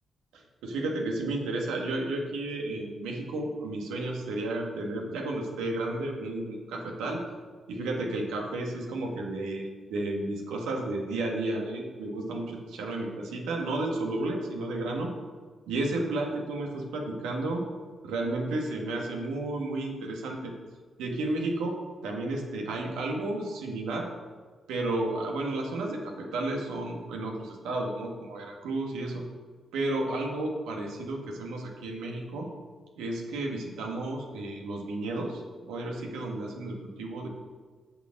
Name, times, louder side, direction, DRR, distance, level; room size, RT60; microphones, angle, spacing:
voice 1, 0.3-7.2 7.7-15.1 15.7-17.6 18.0-20.5 21.0-21.8 22.0-24.1 24.7-29.2 29.7-32.5 33.0-37.3, right 2 dB, 90° right, 0 dB, 1.7 m, -32 dB
7.9 x 6.6 x 6.5 m, 1.5 s
supercardioid pair, 55°, 0 cm